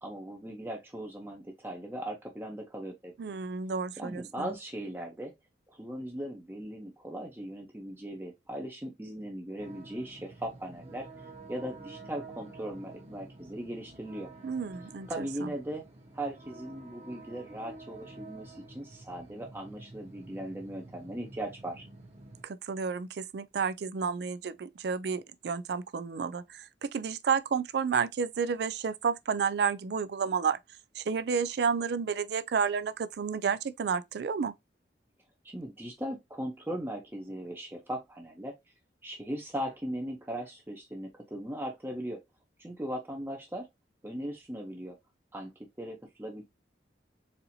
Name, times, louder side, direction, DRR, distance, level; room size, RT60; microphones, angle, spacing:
voice 1, 0.0-3.1 4.0-5.3 5.8-11.1 11.5-14.3 15.1-15.8 16.1-21.9 35.4-38.5 39.0-42.2 42.6-43.7 44.0-45.0 45.3-45.5 45.8-46.4, right 1 dB, 10° right, 0.7 m, -38 dB
voice 2, 3.2-4.5 14.4-15.1 15.4-15.5 22.4-30.6 31.0-34.5, right 6 dB, 60° right, 0.4 m, -31 dB
sound 1, 9.6-22.4, right 2 dB, 35° right, 1.0 m, -49 dB
4.2 x 2.7 x 2.7 m
head